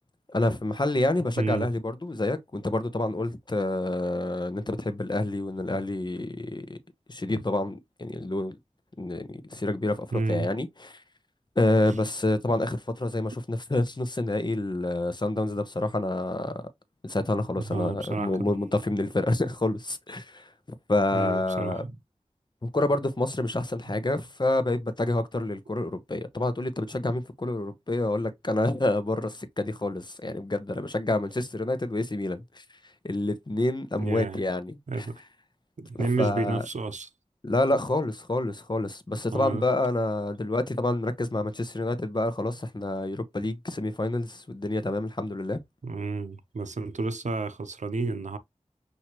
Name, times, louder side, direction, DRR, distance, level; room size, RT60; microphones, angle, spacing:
voice 1, 0.3-6.8 7.1-8.6 9.0-11.0 11.6-16.6 17.0-20.5 20.9-21.8 22.6-32.6 33.0-35.1 36.0-36.6 37.4-45.6, left 2 dB, 35° left, 0.8 m, -28 dB
voice 2, 1.4-1.7 10.1-10.5 17.7-18.3 21.1-22.0 34.0-34.4 34.9-35.2 35.8-37.1 39.3-39.6 45.8-48.4, right 3 dB, 80° right, 0.6 m, -30 dB
5.9 x 2.7 x 3.0 m
wide cardioid pair, 40°, 12 cm